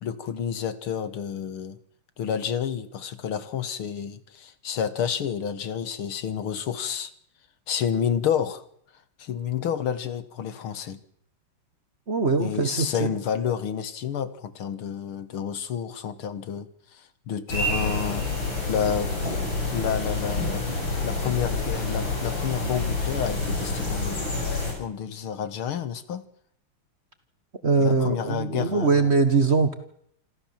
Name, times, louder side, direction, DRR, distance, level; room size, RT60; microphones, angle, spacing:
voice 1, 0.0-1.8 2.2-7.1 7.7-8.6 9.2-11.0 12.4-18.3 18.7-20.8 21.0-26.3 27.8-29.1, left 8 dB, 75° left, 13 dB, 2.3 m, -30 dB
voice 2, 12.1-13.1 27.6-29.7, right 4 dB, 35° right, 10 dB, 1.5 m, -22 dB
sound 1, 17.5-24.7, left 2 dB, 60° left, 7.4 m, -28 dB
27.0 x 14.0 x 7.4 m, 0.68 s
omnidirectional pair, 2.4 m